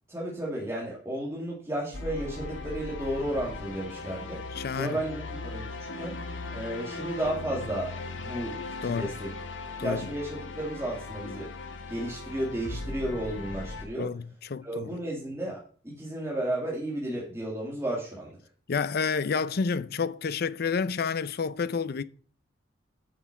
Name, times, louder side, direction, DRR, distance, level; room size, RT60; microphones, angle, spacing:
voice 1, 0.1-4.4 4.7-5.2 5.4-5.7 6.0-6.2 6.5-9.3 9.8-11.5 11.9-14.1 14.6-15.6 15.8-18.4, right 1 dB, 15° right, 2.3 m, -33 dB
sound 1, 1.9-13.9, left 3 dB, 75° left, 1.1 m, -38 dB
voice 2, 4.5-5.0 8.8-9.1 9.8-10.1 14.0-15.0 18.7-22.0, left 5 dB, 55° left, 0.5 m, -29 dB
8.2 x 5.9 x 5.9 m
head